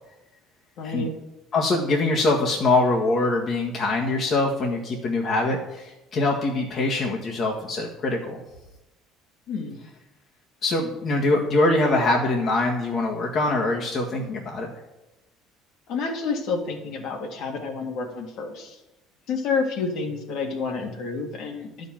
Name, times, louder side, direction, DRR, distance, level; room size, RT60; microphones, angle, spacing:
voice 1, 0.8-1.1 9.5-9.8 15.9-18.8 19.3-21.9, left 4 dB, 65° left, 3 dB, 2.1 m, -29 dB
voice 2, 1.5-8.4 10.6-14.7, left 2 dB, 50° left, -1 dB, 1.7 m, -23 dB
11.0 x 5.4 x 7.3 m, 0.98 s
hypercardioid pair, 65°, 0 cm